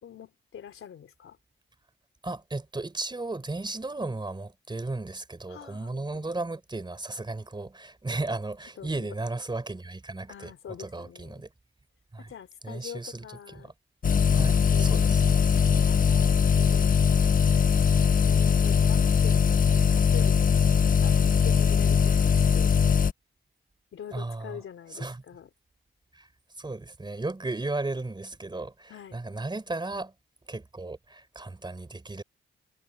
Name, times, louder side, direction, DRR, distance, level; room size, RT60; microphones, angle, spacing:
voice 1, 0.0-1.4 5.5-6.3 8.8-9.1 10.3-11.4 12.2-13.7 14.1-17.0 18.2-22.7 23.9-25.5 28.9-29.2, left 9 dB, 80° left, 4.0 m, -44 dB
voice 2, 2.2-10.5 10.8-11.5 12.1-12.3 12.6-13.7 14.3-15.6 24.1-24.6 24.9-25.2 26.1-26.3 26.6-30.1 30.5-32.2, right 2 dB, 20° right, 3.9 m, -35 dB
sound 1, 14.0-23.1, left 6 dB, 40° left, 0.8 m, -21 dB
cardioid pair, 100°, 21 cm